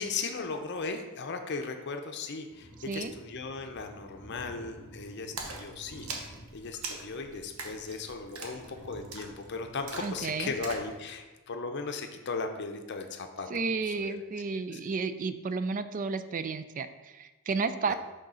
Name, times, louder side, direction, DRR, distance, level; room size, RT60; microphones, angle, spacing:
voice 1, 0.0-6.1 6.5-13.5 13.9-14.2 14.7-14.8 17.9-18.0, left 4 dB, 55° left, 5 dB, 0.6 m, -37 dB
sound 1, 2.4-11.2, equal, 15° left, 1.2 m, -51 dB
Splash splatter, 5.4-10.9, right 3 dB, 90° right, 1.0 m, -42 dB
voice 2, 10.0-10.5 13.5-17.9, right 4 dB, 40° right, 11 dB, 0.4 m, -32 dB
6.3 x 3.9 x 5.5 m, 1.1 s
head